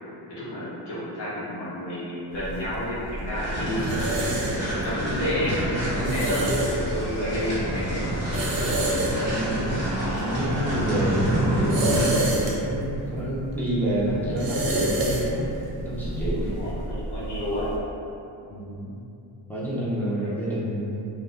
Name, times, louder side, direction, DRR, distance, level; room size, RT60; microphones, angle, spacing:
voice 1, 0.3-4.3 4.8-5.5 5.9-8.0 16.4-17.8, left 1 dB, 60° left, -10 dB, 1.0 m, -30 dB
sound 1, 2.3-17.8, right 1 dB, 50° right, 0.5 m, -30 dB
sound 2, 3.3-12.3, equal, 25° left, 0.9 m, -28 dB
voice 2, 6.0-6.5 8.7-15.5 15.8-16.5 18.5-18.9 19.5-21.1, right 1 dB, 5° left, -10 dB, 0.4 m, -28 dB
2.5 x 2.1 x 3.1 m, 2.8 s
wide cardioid pair, 160°, 47 cm